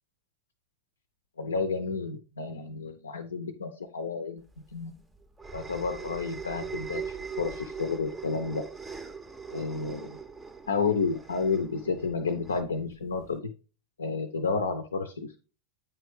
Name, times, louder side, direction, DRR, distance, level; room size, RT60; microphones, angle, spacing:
voice 1, 1.4-4.4 4.7-4.9 5.5-8.6 9.5-10.2 10.7-13.5 14.0-15.4, left 4 dB, 70° left, 8 dB, 0.5 m, -31 dB
sound 1, 4.5-13.3, right 6 dB, 10° right, 0.5 m, -41 dB
8.6 x 3.3 x 3.2 m, 0.35 s
figure-of-eight pair, 90°, 0 cm